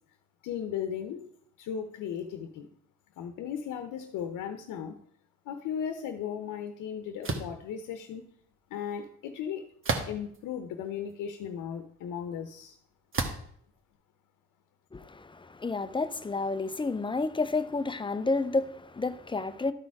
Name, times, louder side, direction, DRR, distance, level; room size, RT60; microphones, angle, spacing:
voice 1, 0.4-1.2 1.6-2.7 3.2-5.0 5.5-8.3 8.7-9.7 10.1-12.8, left 8 dB, 85° left, 0.8 m, -36 dB
sound 1, 7.2-7.6 9.8-10.4 11.1-11.2 13.1-13.5, right 3 dB, 45° right, 1.4 m, -31 dB
voice 2, 14.9-19.7, left 3 dB, 15° left, 0.5 m, -30 dB
12.5 x 4.3 x 4.7 m
cardioid pair, 90°, 30 cm